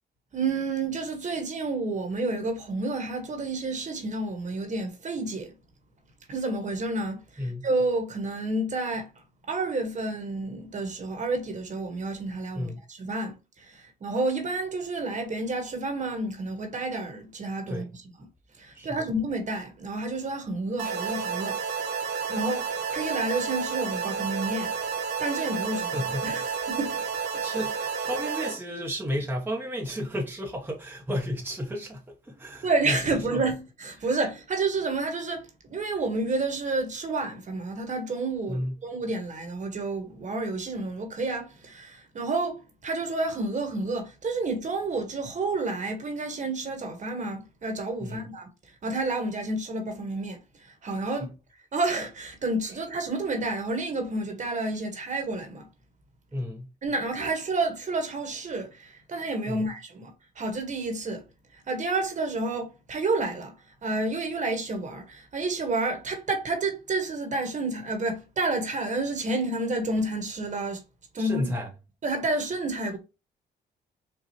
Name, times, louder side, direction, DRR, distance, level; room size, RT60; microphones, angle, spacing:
voice 1, 0.3-5.5 6.3-7.2 7.6-9.1 9.5-18.0 18.6-21.6 22.3-24.8 25.2-27.0 27.5-27.6 32.6-48.5 48.8-50.4 50.6-51.3 51.7-55.7 56.8-61.2 61.7-63.5 63.8-70.8 71.1-71.5 72.0-73.0, right 2 dB, 45° right, 1.4 m, -30 dB
voice 2, 12.5-12.8 17.7-17.9 18.7-19.0 25.9-26.6 27.4-33.5 34.0-34.1 38.5-38.9 48.0-48.2 51.2-51.3 56.3-56.7 59.5-59.7 71.2-71.7, equal, 10° right, 0.9 m, -33 dB
sound 1, 20.8-28.6, right 6 dB, 85° right, 0.9 m, -31 dB
4.7 x 2.3 x 3.0 m
cardioid pair, 90°, 18 cm